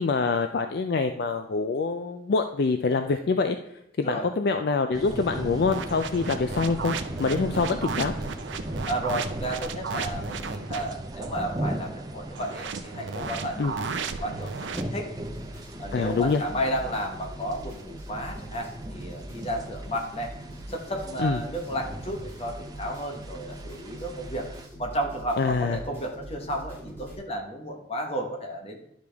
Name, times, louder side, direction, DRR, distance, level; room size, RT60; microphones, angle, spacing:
voice 1, 0.0-3.6 4.0-8.1 13.6-13.7 15.9-16.4 21.2-21.4 25.4-25.8, left 4 dB, 60° left, 7 dB, 0.4 m, -25 dB
sound 1, 4.9-24.7, right 1 dB, 20° right, 0.6 m, -38 dB
sound 2, 5.7-11.0 12.3-14.8, right 5 dB, 80° right, 0.6 m, -34 dB
voice 2, 8.9-15.1 15.8-20.3 20.7-24.5 24.8-28.8, right 1 dB, 35° left, 2 dB, 1.2 m, -33 dB
sound 3, 15.2-27.2, equal, 10° left, 3.5 m, -42 dB
11.0 x 5.1 x 3.4 m, 0.81 s
head